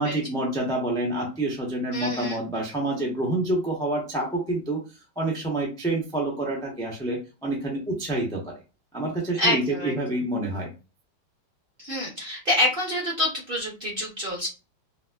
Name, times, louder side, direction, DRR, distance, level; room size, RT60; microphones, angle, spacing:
voice 1, 0.0-4.8 5.2-8.6 8.9-10.7, right 2 dB, 5° left, -2 dB, 0.6 m, -27 dB
voice 2, 1.9-2.4 9.4-9.9 11.8-14.5, left 1 dB, 35° right, -3 dB, 0.9 m, -27 dB
5.1 x 2.0 x 2.4 m, 0.31 s
omnidirectional pair, 2.1 m